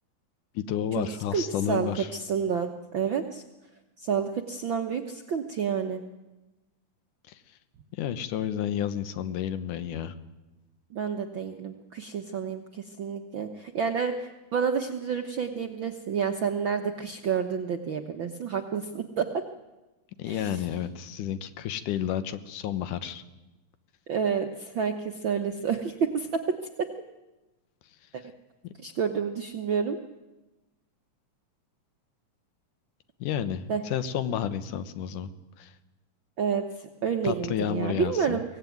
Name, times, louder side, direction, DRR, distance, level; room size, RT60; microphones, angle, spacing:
voice 1, 0.5-2.1 7.3-7.4 8.0-10.1 20.2-23.2 33.2-35.3 35.6-35.7 37.2-38.4, left 9 dB, 80° left, 12 dB, 2.6 m, -31 dB
voice 2, 1.3-3.4 4.0-6.0 10.9-19.3 20.2-20.6 24.1-26.4 28.8-30.0 33.7-33.8 36.4-38.4, right 6 dB, 65° right, 5 dB, 1.2 m, -29 dB
24.0 x 17.5 x 9.3 m, 1.1 s
omnidirectional pair, 3.6 m